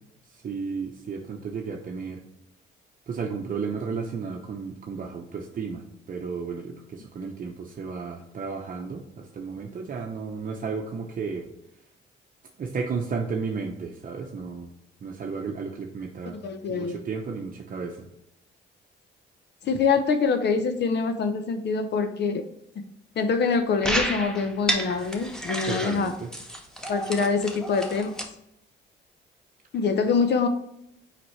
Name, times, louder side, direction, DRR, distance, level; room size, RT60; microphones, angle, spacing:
voice 1, 0.4-2.2 3.1-11.5 12.6-14.7 15.0-16.4 16.7-18.1 25.7-26.3, right 5 dB, 45° right, 2 dB, 0.8 m, -33 dB
voice 2, 16.4-17.0 19.6-22.4 23.2-26.1 26.9-28.1 29.7-30.5, left 5 dB, 60° left, 8 dB, 0.8 m, -24 dB
sound 1, 23.8-28.2, right 1 dB, 5° left, 1.2 m, -31 dB
5.9 x 5.0 x 3.2 m, 0.80 s
cardioid pair, 90°, 20 cm